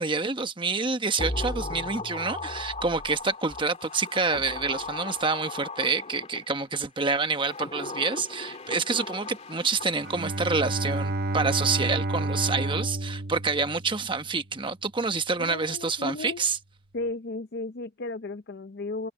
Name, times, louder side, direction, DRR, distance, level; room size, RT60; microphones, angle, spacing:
voice 1, 0.0-16.6, right 4 dB, 25° right, 1.1 m, -27 dB
sound 1, 1.2-6.6 7.3-10.5 10.8-10.9, left 2 dB, 35° left, 2.8 m, -37 dB
Bowed string instrument, 10.0-14.3, right 2 dB, 45° right, 0.9 m, -30 dB
voice 2, 15.4-16.4 16.9-19.1, left 2 dB, 50° left, 0.6 m, -34 dB
head